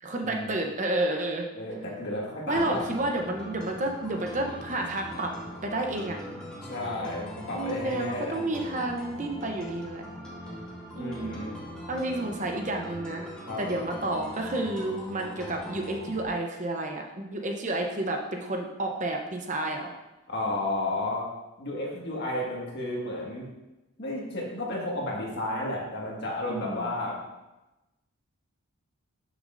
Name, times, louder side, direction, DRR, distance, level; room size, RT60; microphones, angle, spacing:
voice 1, 0.0-1.5 2.5-5.3 5.6-6.2 7.5-10.1 10.9-11.4 11.9-13.3 13.6-19.9 26.5-26.9, right 2 dB, 35° right, 2 dB, 0.8 m, -30 dB
voice 2, 1.6-2.9 6.6-8.4 11.0-11.6 13.5-13.6 20.3-21.3 21.6-23.5 24.0-27.2, left 1 dB, 50° left, -3 dB, 1.8 m, -32 dB
sound 1, 2.5-16.3, equal, 5° left, 1.8 m, -41 dB
11.5 x 6.4 x 2.6 m, 1.0 s
head